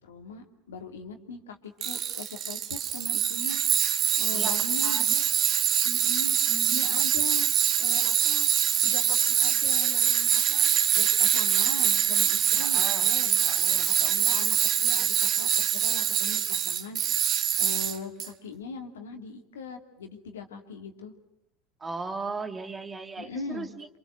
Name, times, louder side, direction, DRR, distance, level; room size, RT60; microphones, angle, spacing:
voice 1, 0.0-3.6 4.2-5.3 5.8-6.4 6.7-7.5 7.8-8.5 8.8-13.4 14.0-17.0 17.4-21.1 23.2-23.7, left 4 dB, 80° left, 4 dB, 2.8 m, -40 dB
Tools, 1.8-18.3, right 10 dB, 45° right, 1.5 m, -24 dB
voice 2, 4.3-5.1 6.5-7.1 12.6-13.1 13.4-13.9 21.8-23.9, right 3 dB, 20° right, 7 dB, 2.3 m, -38 dB
28.0 x 27.0 x 6.4 m, 0.79 s
hypercardioid pair, 75°, 0 cm